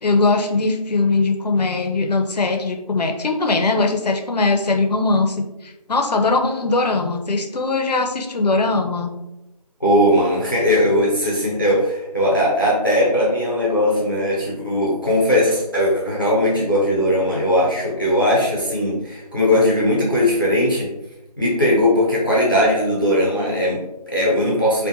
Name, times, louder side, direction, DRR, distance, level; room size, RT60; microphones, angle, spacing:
voice 1, 0.0-9.1, left 3 dB, 85° left, 4 dB, 0.5 m, -20 dB
voice 2, 9.8-20.9 21.4-24.9, left 1 dB, 35° left, -5 dB, 0.5 m, -19 dB
2.6 x 2.1 x 2.6 m, 0.96 s
figure-of-eight pair, 175°, 20 cm